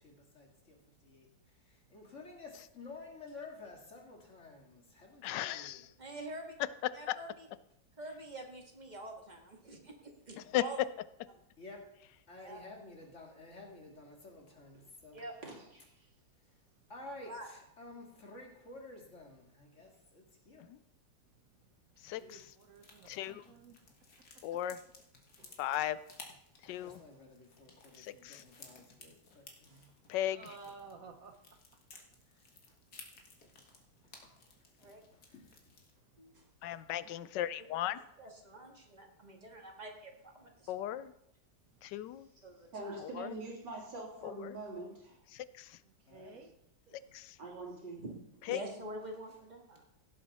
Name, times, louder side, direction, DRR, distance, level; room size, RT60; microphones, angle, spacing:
voice 1, 0.0-5.8 11.6-11.9 12.3-14.7 16.9-20.7 26.8-29.9 32.3-32.4 32.7-32.8 34.1-34.4 34.8-35.6 46.1-46.4 49.3-49.4, left 2 dB, 45° left, 0 dB, 2.4 m, -52 dB
voice 2, 5.2-5.9 7.1-7.2 10.5-10.6 22.0-22.4 23.1-23.4 24.4-24.8 25.6-26.0 26.7-27.0 28.0-28.4 30.1-30.4 36.6-38.0 40.7-41.1 41.8-42.3 43.1-43.3 44.2-44.5 45.3-45.7 47.1-47.3 48.5-48.6, left 13 dB, 85° left, 16 dB, 1.2 m, -36 dB
voice 3, 6.0-6.5 6.9-7.5 8.0-10.8 12.4-12.6 15.2-15.4 17.2-17.5 34.8-35.0 36.2-36.3 38.2-41.0 42.4-43.0 46.9-47.0 48.0-48.2 48.5-49.8, right 1 dB, 25° right, 1 dB, 1.9 m, -46 dB
voice 4, 15.4-15.8 22.0-22.2 25.4-25.5 26.7-27.0 28.7-28.8 29.7-29.9 42.7-45.2 47.4-48.0, right 2 dB, 90° right, -3 dB, 3.7 m, -45 dB
voice 5, 16.8-17.2 21.5-21.7 22.1-23.9 24.2-24.8 30.3-32.0 33.9-34.0 41.7-41.8 45.8-46.5, right 4 dB, 60° right, 6 dB, 1.2 m, -55 dB
sound 1, 22.0-35.9, left 4 dB, 60° left, 2.2 m, -58 dB
16.5 x 7.7 x 4.2 m, 0.79 s
omnidirectional pair, 1.9 m